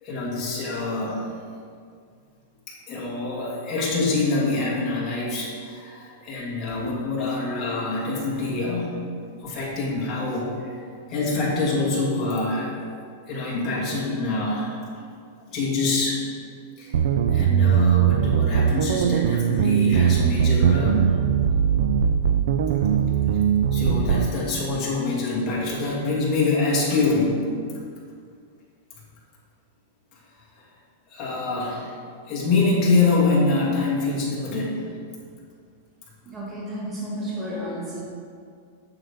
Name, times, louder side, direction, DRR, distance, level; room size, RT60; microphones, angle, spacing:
voice 1, 0.0-1.3 2.7-8.9 9.3-12.9 13.3-15.1 15.5-16.3 16.8-17.0 17.3-21.1 23.7-27.4 31.1-31.9 32.3-34.9, left 3 dB, 25° left, -6 dB, 2.1 m, -25 dB
sound 1, 16.9-24.3, right 7 dB, 70° right, 0.4 m, -20 dB
voice 2, 36.2-38.0, equal, 15° right, -7 dB, 1.8 m, -32 dB
9.1 x 7.0 x 3.6 m, 2.2 s
supercardioid pair, 165°, 0 cm